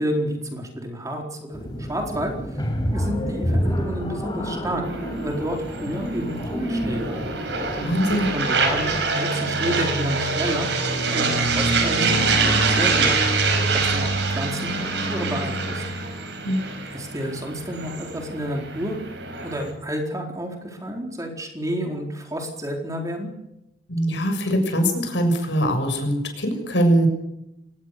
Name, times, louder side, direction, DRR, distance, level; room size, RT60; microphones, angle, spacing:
voice 1, 0.0-2.6 2.9-4.8 5.2-7.2 7.7-13.2 13.7-15.8 16.9-19.0 19.4-23.3, equal, 20° right, 2 dB, 4.3 m, -30 dB
sound 1, 1.5-9.0, equal, 25° left, 5.6 m, -29 dB
sound 2, 4.9-19.7, right 3 dB, 75° right, 5.1 m, -25 dB
voice 2, 7.8-8.3 16.4-16.6 23.9-27.1, equal, 80° left, 6 dB, 6.9 m, -22 dB
24.5 x 19.5 x 6.8 m, 0.85 s
head